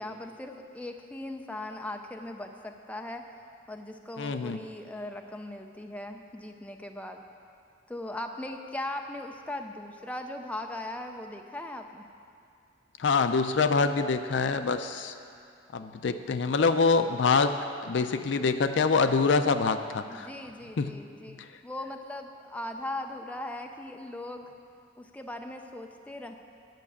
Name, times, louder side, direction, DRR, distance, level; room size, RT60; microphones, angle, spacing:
voice 1, 0.0-3.2 3.7-7.2 7.9-12.0 20.1-24.5 25.0-26.4, left 1 dB, 5° left, 4 dB, 0.4 m, -39 dB
voice 2, 4.2-4.6 13.0-15.1 15.7-20.3 20.8-21.0 21.4-21.5, left 4 dB, 65° left, 9 dB, 0.4 m, -25 dB
9.2 x 5.9 x 8.4 m, 2.4 s
head